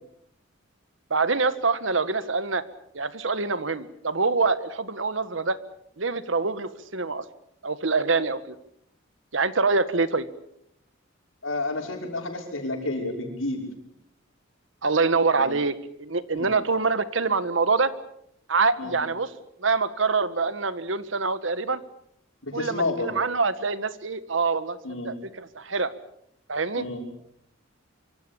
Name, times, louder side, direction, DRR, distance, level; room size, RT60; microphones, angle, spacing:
voice 1, 1.1-2.6 2.9-5.6 6.0-7.2 7.6-8.5 9.3-10.3 14.8-17.9 18.5-19.3 19.6-21.8 22.5-24.8 25.0-25.9 26.5-26.9, right 4 dB, 70° right, 14 dB, 1.5 m, -25 dB
voice 2, 11.4-13.6 15.4-15.6 16.3-16.5 18.8-19.0 22.4-23.1 24.8-25.1 26.8-27.0, left 2 dB, 85° left, 2 dB, 5.9 m, -30 dB
25.0 x 25.0 x 7.1 m, 0.74 s
head